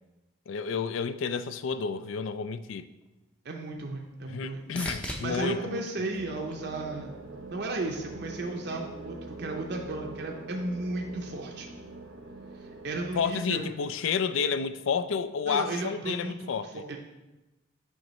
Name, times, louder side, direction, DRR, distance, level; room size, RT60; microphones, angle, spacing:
voice 1, 0.5-2.9 4.3-6.1 13.2-16.8, left 6 dB, 75° left, 13 dB, 0.4 m, -30 dB
sound 1, 3.0-7.2 7.7-8.4 16.2-16.3, equal, 5° left, 0.5 m, -43 dB
voice 2, 3.4-4.6 5.2-7.1 7.5-11.7 12.5-13.7 15.5-17.0, right 2 dB, 55° right, 1 dB, 0.5 m, -34 dB
sound 2, 6.1-13.4, right 2 dB, 85° right, 0.9 m, -43 dB
7.7 x 5.5 x 3.1 m, 1.0 s
head